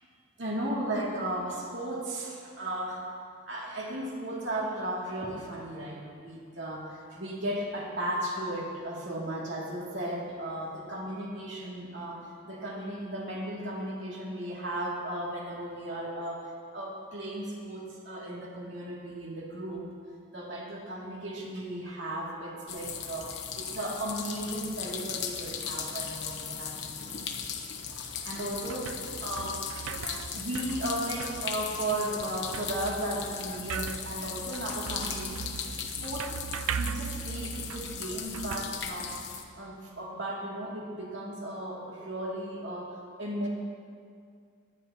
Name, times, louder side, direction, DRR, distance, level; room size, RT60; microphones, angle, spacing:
voice 1, 0.4-3.1 3.5-19.9 20.3-27.2 28.2-30.1 30.3-36.4 36.7-39.2 39.6-43.5, right 1 dB, 60° right, -4 dB, 2.5 m, -35 dB
sound 1, 22.7-39.4, left 7 dB, 55° left, 1.0 m, -37 dB
sound 2, 28.0-39.5, right 7 dB, 90° right, 0.4 m, -40 dB
21.0 x 10.0 x 2.9 m, 2.2 s
head